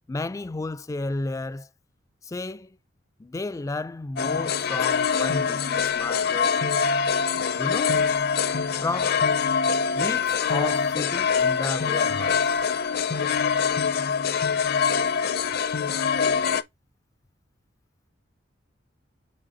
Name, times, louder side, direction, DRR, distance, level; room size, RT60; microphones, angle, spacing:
voice 1, 0.1-1.7 2.2-2.8 3.2-6.5 7.6-8.0 8.8-9.3 9.9-12.4, left 2 dB, 15° left, 0.3 m, -32 dB
sound 1, 4.2-16.6, left 6 dB, 60° left, 0.6 m, -24 dB
5.0 x 4.6 x 4.1 m
head